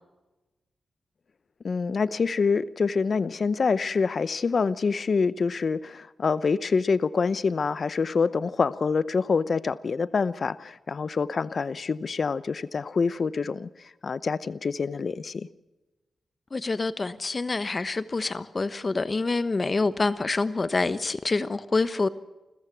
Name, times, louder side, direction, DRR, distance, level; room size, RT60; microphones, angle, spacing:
voice 1, 1.6-13.7 14.0-15.5, left 5 dB, 50° left, 0.8 m, -26 dB
voice 2, 16.5-22.1, left 3 dB, 35° left, 1.1 m, -26 dB
29.5 x 15.0 x 6.1 m
cardioid pair, 95°, 0 cm